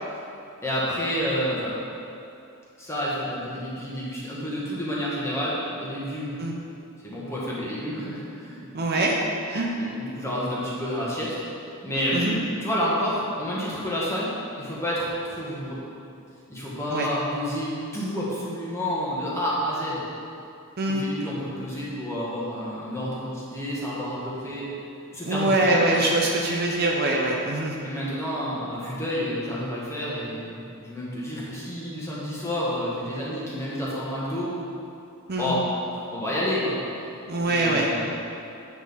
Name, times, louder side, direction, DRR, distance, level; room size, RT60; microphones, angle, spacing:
voice 1, 0.6-1.7 2.8-6.4 7.0-8.7 9.7-11.4 11.8-12.2 12.6-14.3 14.6-15.8 16.5-20.0 20.9-24.7 25.1-25.8 27.8-34.5 35.4-35.6 35.9-36.8 37.4-38.2, equal, 15° left, -7 dB, 1.6 m, -29 dB
voice 2, 8.7-9.2 9.5-9.7 12.1-12.3 16.9-17.1 20.8-21.0 25.2-27.7 35.3-35.5 37.3-37.9, right 2 dB, 45° right, -1 dB, 0.7 m, -23 dB
8.6 x 6.0 x 3.7 m, 2.6 s
head